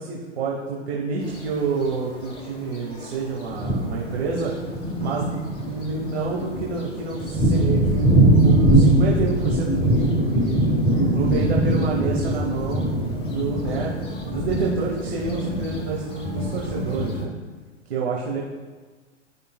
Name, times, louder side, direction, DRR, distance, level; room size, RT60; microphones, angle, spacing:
voice 1, 0.0-4.5 5.0-10.5 11.0-12.9 13.3-17.3 17.9-18.4, right 4 dB, 55° right, -2 dB, 1.2 m, -28 dB
Thunder, 1.2-1.4 2.3-2.4 3.0-3.1 3.5-17.2, right 1 dB, 15° left, 1.0 m, -22 dB
12.5 x 5.2 x 2.2 m, 1.4 s
figure-of-eight pair, 110°, 37 cm